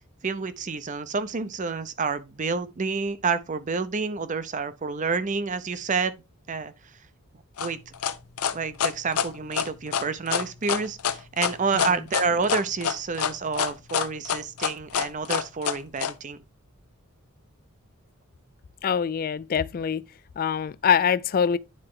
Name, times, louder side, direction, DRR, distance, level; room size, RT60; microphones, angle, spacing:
voice 1, 0.2-6.1 6.5-6.7 7.6-7.9 8.5-16.4, right 4 dB, 35° right, 0.6 m, -29 dB
sound 1, 7.6-16.1, left 8 dB, 80° left, 0.7 m, -26 dB
voice 2, 18.8-20.1 20.4-21.6, left 7 dB, 40° left, 0.3 m, -24 dB
9.8 x 4.3 x 3.6 m
head